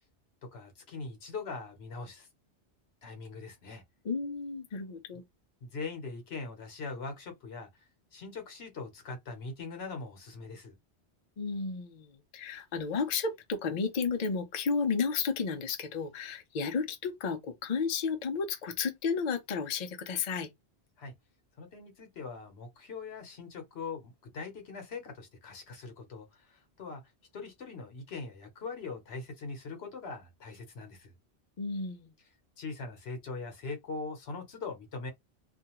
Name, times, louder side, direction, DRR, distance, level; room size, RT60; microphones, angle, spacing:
voice 1, 0.4-2.3 3.0-3.8 5.6-7.8 8.1-10.8 21.0-21.1 21.6-27.0 27.3-31.1 32.6-35.1, left 4 dB, 70° left, 1.0 m, -41 dB
voice 2, 4.0-5.2 11.4-20.5 31.6-32.1, left 5 dB, 50° left, 0.5 m, -32 dB
2.4 x 2.3 x 2.9 m
omnidirectional pair, 1.1 m